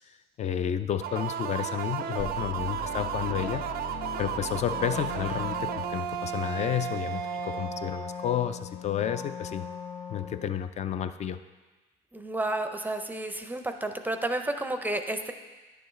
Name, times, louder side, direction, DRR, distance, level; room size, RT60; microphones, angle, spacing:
voice 1, 0.1-9.7 10.1-11.4, left 9 dB, 40° left, 11 dB, 0.5 m, -31 dB
sound 1, 1.0-8.6, right 10 dB, 70° right, 0.4 m, -34 dB
sound 2, 2.2-6.2, left 2 dB, 65° left, 1.3 m, -40 dB
Wind instrument woodwind instrument, 4.6-10.6, left 6 dB, 25° left, 1.3 m, -40 dB
voice 2, 12.1-15.3, right 2 dB, 10° right, 7 dB, 0.5 m, -31 dB
10.0 x 6.8 x 3.2 m, 1.2 s
cardioid pair, 110°, 17 cm